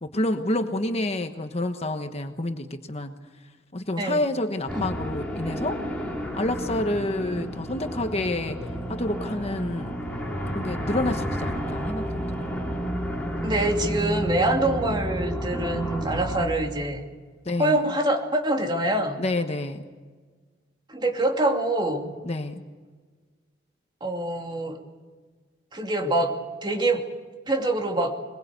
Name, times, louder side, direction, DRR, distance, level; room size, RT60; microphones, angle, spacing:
voice 1, 0.0-3.2 3.7-5.8 6.3-8.6 8.9-9.9 10.5-12.5 17.4-17.9 19.2-19.8 22.2-22.6, left 1 dB, 35° left, 7 dB, 1.2 m, -28 dB
sound 1, 4.7-16.5, equal, 5° left, 3.6 m, -31 dB
voice 2, 13.4-17.0 17.6-19.2 20.9-22.1 24.0-24.8 25.7-27.0 27.5-28.2, right 1 dB, 25° right, 2 dB, 2.6 m, -25 dB
22.5 x 21.5 x 8.1 m, 1.4 s
head